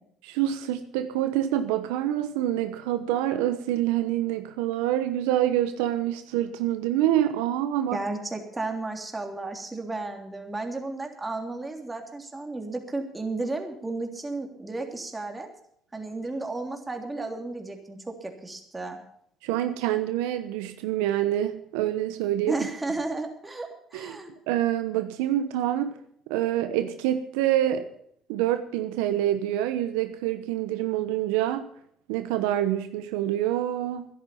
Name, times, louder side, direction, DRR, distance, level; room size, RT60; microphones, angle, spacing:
voice 1, 0.3-8.0 19.4-22.5 23.9-24.1 24.5-26.0 26.3-27.9 28.3-31.7 32.1-34.1, right 12 dB, 85° right, 9 dB, 1.0 m, -26 dB
voice 2, 7.9-15.5 15.9-19.0 22.5-24.3, right 2 dB, 20° right, 3 dB, 3.3 m, -33 dB
13.0 x 11.0 x 7.1 m, 0.68 s
supercardioid pair, 75°, 0 cm